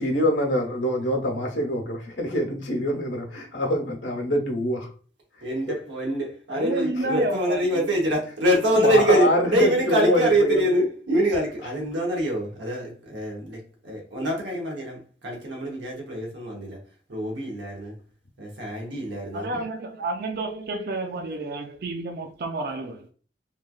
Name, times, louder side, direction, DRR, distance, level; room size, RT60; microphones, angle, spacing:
voice 1, 0.0-4.9 8.8-10.6, left 1 dB, 90° left, 0.9 m, -25 dB
voice 2, 5.4-13.6 13.8-16.8 17.1-17.9 18.4-19.5, right 1 dB, 75° right, 0.8 m, -25 dB
voice 3, 6.5-8.0 19.3-23.1, right 2 dB, 50° right, 0.3 m, -30 dB
3.1 x 2.3 x 2.2 m
head